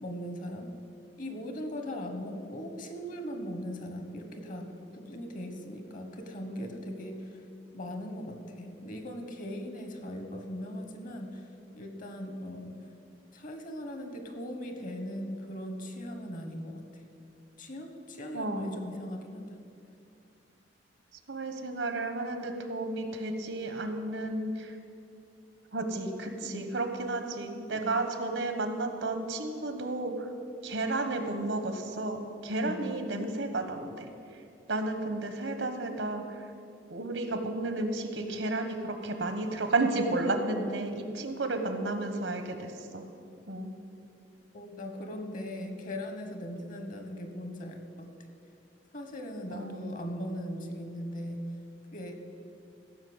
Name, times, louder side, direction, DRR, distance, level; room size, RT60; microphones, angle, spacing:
voice 1, 0.0-0.7 1.2-4.7 4.9-7.4 7.7-11.5 11.7-12.8 13.3-16.8 17.6-19.6 25.9-26.8 27.7-28.0 32.6-32.9 44.5-48.1 48.9-51.4 51.9-52.2, equal, 45° left, 6 dB, 1.3 m, -39 dB
voice 2, 18.3-19.0 21.3-24.8 25.7-30.3 30.6-34.0 34.7-36.5 36.9-43.0 43.5-43.7 49.5-49.9, right 2 dB, 80° right, 7 dB, 1.2 m, -32 dB
15.0 x 5.8 x 7.9 m, 2.6 s
head